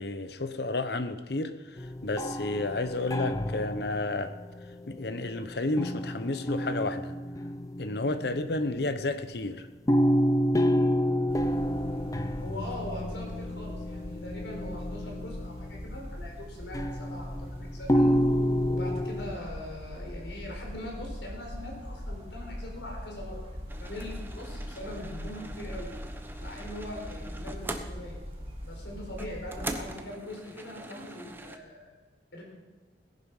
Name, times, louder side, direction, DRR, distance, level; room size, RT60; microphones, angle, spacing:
voice 1, 0.0-1.5 1.8-4.3 4.9-7.1 7.8-9.7, left 2 dB, 60° left, 11 dB, 0.9 m, -31 dB
sound 1, 1.8-5.3 5.8-9.0 9.9-16.0 16.7-19.4, equal, 20° left, 0.6 m, -29 dB
sound 2, 11.3-29.8, equal, 35° right, 3.2 m, -41 dB
voice 2, 12.4-18.2 18.7-25.9 26.4-28.2 28.6-31.9 32.3-32.4, left 1 dB, 80° left, 0 dB, 4.6 m, -41 dB
sound 3, 23.7-31.6, right 2 dB, 10° right, 0.9 m, -42 dB
17.5 x 11.0 x 5.5 m, 1.2 s
head